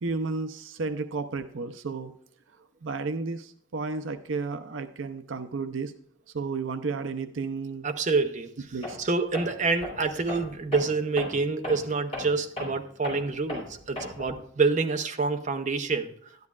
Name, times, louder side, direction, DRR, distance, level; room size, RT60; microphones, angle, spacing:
voice 1, 0.0-2.1 2.8-5.9 6.3-7.9 8.7-9.0, right 4 dB, 75° right, 10 dB, 0.6 m, -32 dB
voice 2, 7.8-8.5 9.0-16.1, right 4 dB, 40° right, 6 dB, 0.8 m, -27 dB
Tools, 8.8-9.1 9.3-14.4, left 1 dB, 30° left, 4.2 m, -37 dB
12.0 x 10.5 x 2.4 m, 0.63 s
head